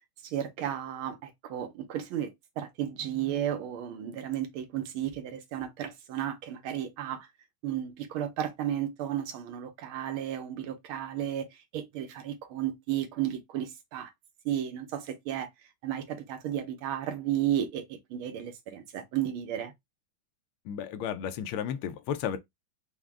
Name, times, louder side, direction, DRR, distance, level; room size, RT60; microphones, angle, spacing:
voice 1, 0.2-7.3 7.6-14.1 14.4-15.5 15.8-19.7, right 11 dB, 85° right, 1.6 m, -33 dB
voice 2, 20.6-22.4, left 8 dB, 90° left, 1.5 m, -33 dB
4.8 x 2.1 x 3.4 m
omnidirectional pair, 2.3 m